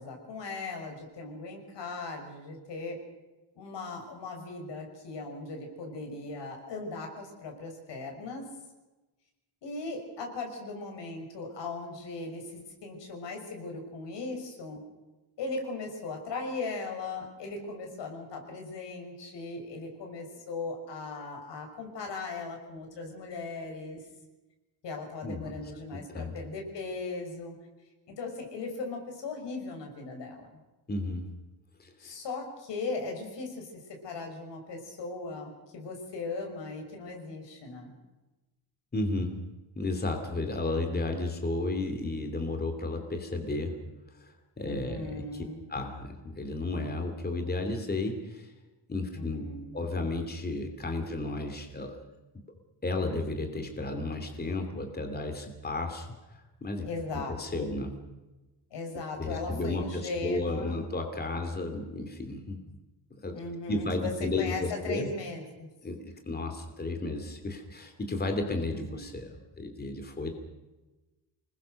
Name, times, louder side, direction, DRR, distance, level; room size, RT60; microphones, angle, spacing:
voice 1, 0.0-3.0 3.6-8.4 9.6-12.4 12.8-14.8 15.4-24.0 24.8-27.5 28.1-30.5 32.0-37.9 44.6-45.7 49.1-49.7 56.8-57.7 58.7-60.9 63.3-64.1 64.4-65.7 68.7-69.1, left 3 dB, 80° left, 3 dB, 6.4 m, -38 dB
voice 2, 25.2-25.6 25.9-26.3 30.9-31.2 31.8-32.1 38.9-39.4 39.8-43.8 44.1-45.4 45.7-48.5 48.9-49.5 49.7-52.0 52.8-56.1 56.6-56.9 57.4-58.0 59.2-62.6 63.2-63.4 63.7-65.1 65.8-70.3, left 2 dB, 20° left, 5 dB, 2.7 m, -33 dB
27.5 x 20.5 x 6.6 m, 1.1 s
wide cardioid pair, 150°, 42 cm